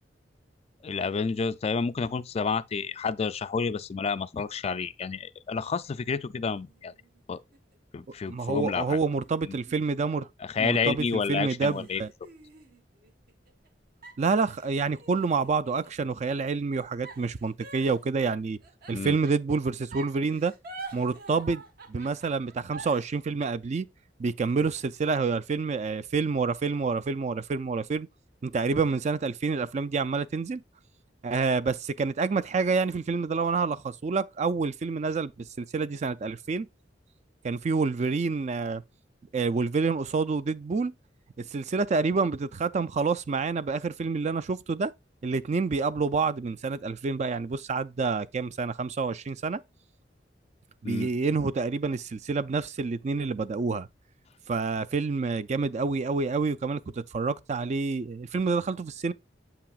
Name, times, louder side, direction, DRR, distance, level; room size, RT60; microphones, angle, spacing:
voice 1, 0.8-6.9 7.3-7.4 7.9-9.0 9.5-9.6 10.4-12.0 18.9-19.2 50.8-51.1, left 5 dB, 35° left, 0.3 m, -30 dB
sound 1, 6.4-7.8 8.5-10.7 11.1-11.2 11.6-13.7 14.0-16.0 17.0-19.5 19.9-23.0, right 3 dB, 60° right, 1.3 m, -47 dB
voice 2, 8.3-10.3 10.6-12.1 14.2-18.6 18.9-20.5 20.9-21.6 21.9-23.9 24.2-28.1 28.4-30.6 31.2-35.3 35.6-36.7 37.4-38.8 39.3-40.9 41.5-44.9 45.2-49.6 50.8-53.9 54.5-59.1, right 4 dB, 40° right, 0.4 m, -28 dB
7.7 x 5.8 x 2.3 m
head